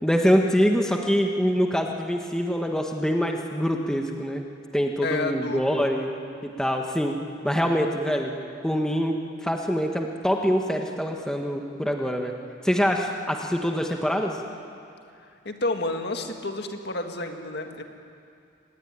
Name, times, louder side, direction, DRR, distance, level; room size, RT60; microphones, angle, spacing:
voice 1, 0.0-4.5 4.7-6.1 6.4-7.2 7.4-8.4 8.6-12.3 12.6-14.3, equal, 5° left, 2 dB, 1.4 m, -24 dB
voice 2, 5.0-5.9 15.5-17.8, left 2 dB, 55° left, 4 dB, 2.0 m, -30 dB
25.0 x 20.0 x 10.0 m, 2.5 s
head